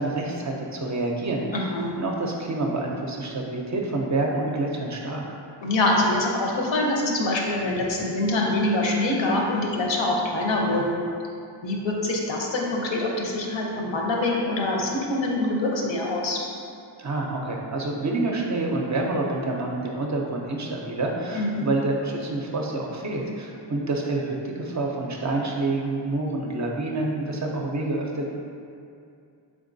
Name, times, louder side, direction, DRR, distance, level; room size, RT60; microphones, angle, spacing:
voice 1, 0.0-5.3 17.0-28.3, right 2 dB, 40° right, 0 dB, 0.4 m, -28 dB
voice 2, 1.5-1.9 5.6-11.0 11.6-16.4 21.3-21.6, left 2 dB, 70° left, -1 dB, 0.7 m, -24 dB
3.7 x 3.5 x 2.6 m, 2.5 s
wide cardioid pair, 70°, 47 cm